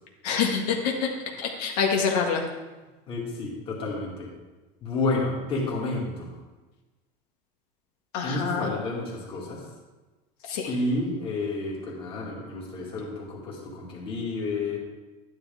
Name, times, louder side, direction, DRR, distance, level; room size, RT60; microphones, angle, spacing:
voice 1, 0.2-1.1 1.4-2.4 8.1-8.7 10.5-10.7, left 6 dB, 75° left, 0 dB, 1.8 m, -26 dB
voice 2, 3.1-4.3 4.8-6.3 8.2-9.6 10.7-14.8, left 2 dB, 25° left, -2 dB, 2.3 m, -30 dB
12.0 x 10.5 x 3.5 m, 1.2 s
cardioid pair, 175°, 20 cm